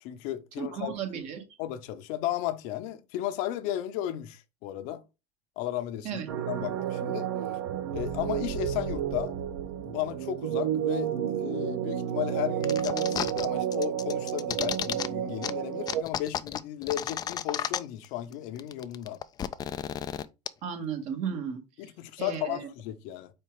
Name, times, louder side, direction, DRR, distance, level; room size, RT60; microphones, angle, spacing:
voice 1, 0.0-0.9 1.6-5.0 5.6-6.2 6.5-7.3 7.9-9.3 9.8-11.1 11.4-19.2 21.8-23.3, left 12 dB, 65° left, 0.8 m, -34 dB
voice 2, 0.6-1.4 6.0-6.3 20.6-21.6 22.2-22.6, right 7 dB, 55° right, 1.8 m, -34 dB
sound 1, 6.3-16.0, right 10 dB, 90° right, 1.0 m, -31 dB
sound 2, 12.6-13.5 13.7-15.1 15.4-15.5 15.9-18.1 18.3-18.4 18.6-20.5, left 9 dB, 30° left, 0.4 m, -32 dB
4.7 x 4.4 x 4.9 m
supercardioid pair, 135°, 14 cm